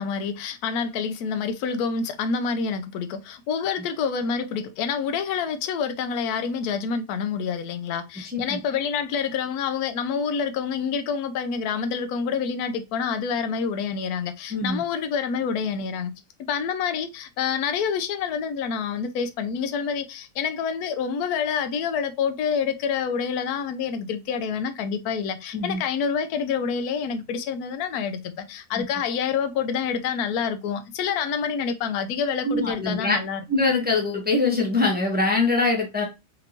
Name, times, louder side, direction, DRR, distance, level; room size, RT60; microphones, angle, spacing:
voice 1, 0.0-16.1 16.5-33.4, left 6 dB, 70° left, 1.0 m, -27 dB
voice 2, 8.2-8.6 14.5-14.8 25.5-25.8 28.7-28.8 32.4-33.2 33.5-36.0, left 3 dB, 10° right, 0.5 m, -23 dB
4.4 x 2.6 x 2.9 m
omnidirectional pair, 1.9 m